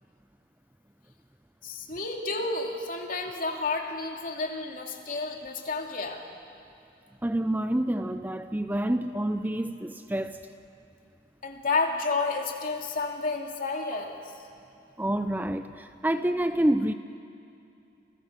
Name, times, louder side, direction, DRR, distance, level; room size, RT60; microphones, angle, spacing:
voice 1, 1.6-6.2 11.4-14.2, left 3 dB, 50° left, 1 dB, 2.9 m, -31 dB
voice 2, 7.2-10.5 15.0-16.9, right 1 dB, 10° right, 9 dB, 0.6 m, -28 dB
29.0 x 28.0 x 6.8 m, 2.6 s
head